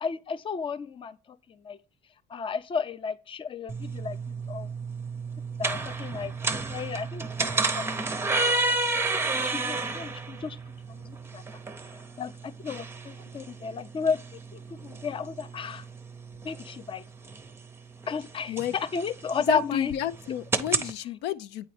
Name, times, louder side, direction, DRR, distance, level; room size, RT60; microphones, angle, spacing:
voice 1, 0.0-1.2 1.6-1.8 2.3-4.2 4.5-4.7 5.6-6.3 6.7-7.5 7.7-8.1 9.4-10.6 10.9-11.4 12.2-14.2 14.5-15.8 16.4-17.0 18.1-19.9, left 5 dB, 30° left, 0.5 m, -32 dB
sound 1, 3.7-20.9, right 3 dB, 15° right, 0.6 m, -32 dB
voice 2, 19.4-21.7, left 11 dB, 85° left, 0.4 m, -31 dB
8.6 x 4.0 x 3.2 m
cardioid pair, 110°, 17 cm